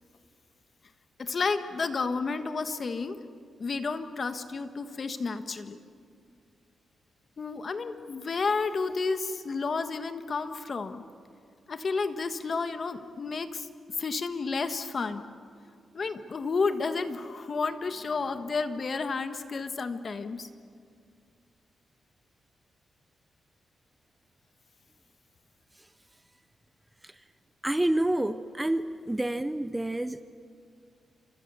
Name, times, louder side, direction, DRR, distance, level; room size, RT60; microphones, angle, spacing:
voice 1, 1.2-3.2 3.6-5.8 7.4-11.0 11.7-13.7 14.0-15.2 15.9-20.5, left 4 dB, 40° left, 9 dB, 1.4 m, -31 dB
voice 2, 27.6-30.2, right 1 dB, 10° right, 12 dB, 0.7 m, -28 dB
29.0 x 27.5 x 7.0 m, 2.3 s
wide cardioid pair, 140°, 0 cm